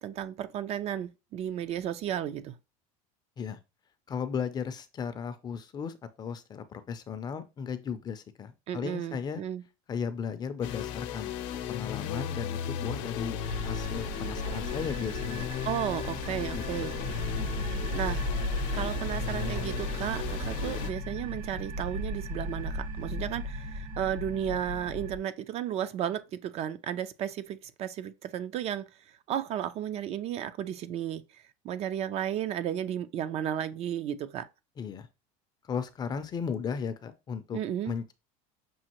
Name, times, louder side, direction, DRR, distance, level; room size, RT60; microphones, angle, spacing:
voice 1, 0.0-2.6 8.7-9.6 15.6-16.9 17.9-18.2 18.7-28.9 29.3-31.2 31.6-34.5 37.5-37.9, right 10 dB, 40° right, 0.4 m, -33 dB
voice 2, 4.1-9.4 9.9-11.3 11.7-15.5 16.5-18.0 34.8-35.1 35.6-37.6 37.8-38.1, left 7 dB, 25° left, 0.4 m, -36 dB
sound 1, 10.6-20.9, left 9 dB, 75° left, 0.7 m, -36 dB
sound 2, 13.4-25.2, equal, 70° right, 1.5 m, -35 dB
6.2 x 2.4 x 2.9 m
cardioid pair, 140°, 17 cm